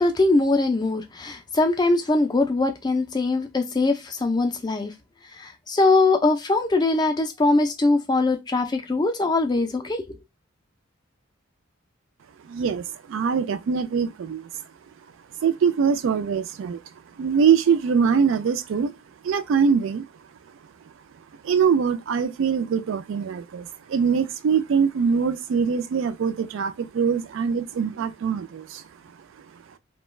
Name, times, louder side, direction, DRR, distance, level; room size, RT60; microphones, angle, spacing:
voice 1, 0.0-4.9 5.3-10.2, left 2 dB, 20° left, 0.3 m, -22 dB
voice 2, 12.5-14.5 15.4-16.8 17.2-18.9 19.2-20.0 21.4-28.8, right 6 dB, 70° right, 0.3 m, -23 dB
2.3 x 2.1 x 3.1 m
head